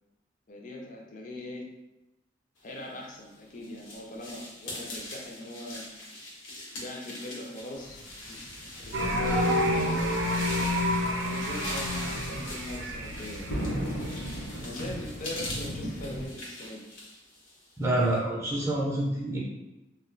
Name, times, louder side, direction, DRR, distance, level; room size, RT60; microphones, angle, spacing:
voice 1, 0.5-1.7 2.6-6.0 6.8-10.4 11.2-13.8 14.1-16.8, left 1 dB, 40° left, -1 dB, 0.5 m, -41 dB
sound 1, 3.0-18.2, left 1 dB, 90° left, 0.9 m, -42 dB
sound 2, 7.8-16.3, equal, 65° left, 0.9 m, -39 dB
sound 3, 8.9-14.5, equal, 80° right, 0.4 m, -29 dB
voice 2, 17.8-19.4, right 1 dB, 15° right, -5 dB, 0.4 m, -27 dB
2.2 x 2.1 x 3.8 m, 0.97 s
head